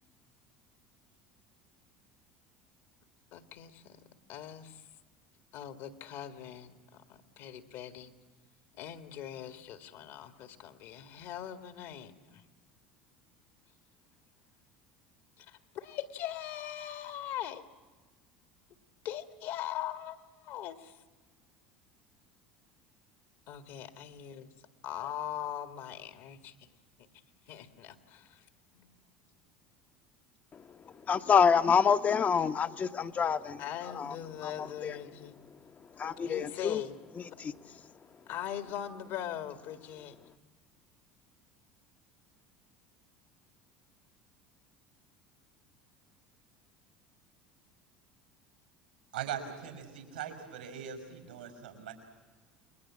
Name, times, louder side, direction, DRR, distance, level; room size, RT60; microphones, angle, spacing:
voice 1, 3.3-4.0 4.3-4.8 5.5-8.1 8.7-12.4 15.4-17.7 19.0-21.0 23.5-24.5 24.8-26.6 27.5-28.5 28.7-29.1 33.6-35.4 36.2-37.0 38.3-40.2, left 11 dB, 65° left, 1.9 m, -41 dB
voice 2, 31.1-33.6 34.0-34.1 34.4-34.5 34.8-34.9 36.0-36.8 37.4-37.5, left 6 dB, 35° left, 1.0 m, -26 dB
voice 3, 49.1-51.9, right 9 dB, 85° right, 5.3 m, -40 dB
29.5 x 21.5 x 7.5 m
hypercardioid pair, 75°, 5 cm